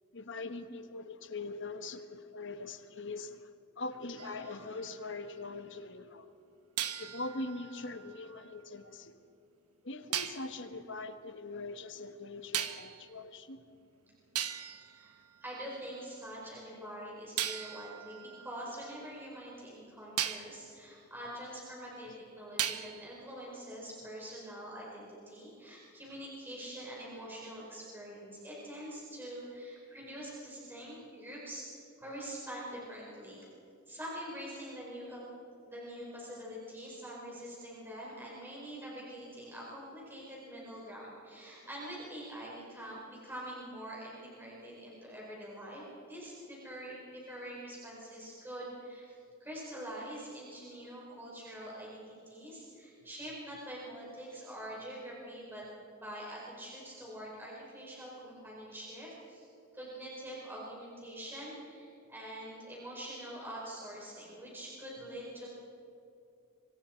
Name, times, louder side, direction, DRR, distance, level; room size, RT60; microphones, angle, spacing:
voice 1, 0.1-3.5 3.8-6.3 7.0-9.1 9.8-13.6 29.6-29.7, left 3 dB, 55° left, 9 dB, 1.2 m, -42 dB
sound 1, 4.2-5.6 6.8-8.9 10.1-10.5 12.5-13.1 13.9-14.0 14.3-16.0 17.4-19.5 20.2-20.6 22.6-23.2, right 10 dB, 90° right, 1.2 m, -39 dB
voice 2, 15.4-33.4 33.9-35.2 35.6-55.6 55.9-59.5 59.7-65.5, right 1 dB, 10° right, -5 dB, 4.6 m, -45 dB
26.0 x 24.5 x 4.5 m, 2.7 s
head